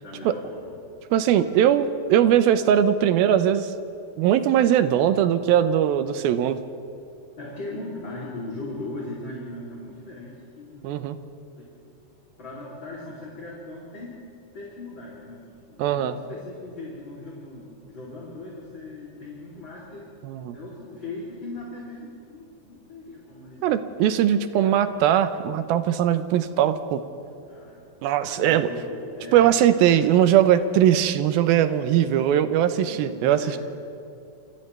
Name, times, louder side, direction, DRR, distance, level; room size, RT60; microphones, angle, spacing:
voice 1, 0.0-0.8 7.4-10.9 11.6-11.7 12.4-14.1 14.5-20.1 20.5-23.6 24.5-24.9 27.4-27.9 28.2-30.4 32.0-32.3 32.8-33.6, left 2 dB, 35° left, -6 dB, 3.6 m, -39 dB
voice 2, 1.1-3.7 4.2-6.6 10.8-11.2 15.8-16.1 20.2-20.6 23.6-27.0 28.0-28.7 29.3-33.4, right 10 dB, 85° right, 10 dB, 2.7 m, -20 dB
28.0 x 27.5 x 3.4 m, 2.6 s
omnidirectional pair, 4.2 m